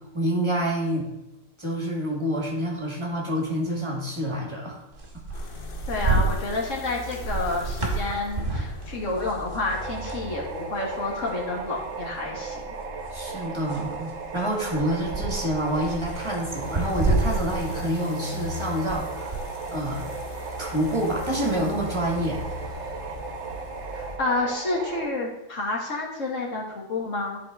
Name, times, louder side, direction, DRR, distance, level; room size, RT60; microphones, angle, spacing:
voice 1, 0.1-1.1 1.6-4.8 5.3-5.5 13.1-19.4 19.7-20.1 20.6-22.4, right 1 dB, 20° right, -2 dB, 1.8 m, -27 dB
sound 1, 4.9-10.3 10.6-10.8 11.1-11.9 12.5-19.0 19.3-22.7, right 2 dB, 40° right, 1.6 m, -30 dB
sound 2, 5.3-24.2, left 2 dB, 45° left, 1.0 m, -40 dB
voice 2, 5.9-12.8 23.9-27.4, left 2 dB, 65° left, -1 dB, 1.8 m, -29 dB
sound 3, 9.7-25.1, right 5 dB, 65° right, 1.0 m, -36 dB
10.0 x 4.6 x 3.7 m, 0.92 s
omnidirectional pair, 1.4 m